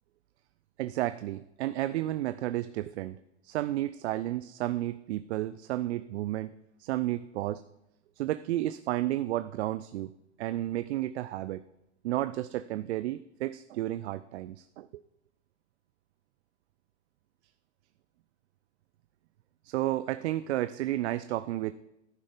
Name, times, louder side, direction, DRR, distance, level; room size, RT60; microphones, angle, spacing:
voice 1, 0.8-3.2 3.4-6.5 6.8-7.6 8.2-10.1 10.4-11.6 12.0-14.9 19.6-21.7, right 14 dB, 70° right, 14 dB, 0.6 m, -32 dB
11.5 x 9.1 x 5.1 m, 0.88 s
hypercardioid pair, 105°, 35 cm